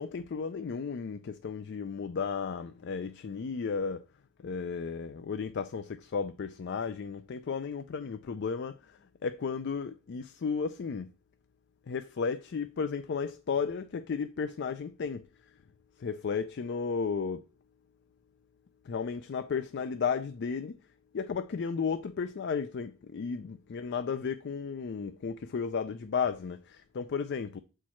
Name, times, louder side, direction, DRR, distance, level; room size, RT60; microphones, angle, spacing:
voice 1, 0.0-4.0 4.4-11.1 11.9-15.3 16.0-17.4 18.8-20.8 21.1-27.6, left 5 dB, 60° left, 0.4 m, -34 dB
7.2 x 4.5 x 4.4 m
head